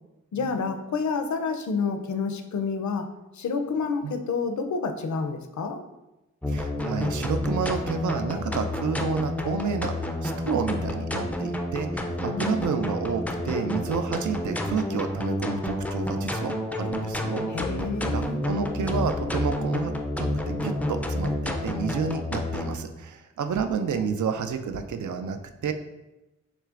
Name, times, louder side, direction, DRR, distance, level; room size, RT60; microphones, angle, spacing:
voice 1, 0.3-5.8 12.2-12.7 17.5-18.4, left 5 dB, 70° left, 7 dB, 0.5 m, -29 dB
sound 1, 6.4-22.8, left 1 dB, 5° left, 0.3 m, -29 dB
voice 2, 6.5-17.5 18.1-25.7, right 6 dB, 80° right, 7 dB, 0.5 m, -30 dB
6.1 x 3.3 x 2.4 m, 0.99 s
wide cardioid pair, 130°, 30 cm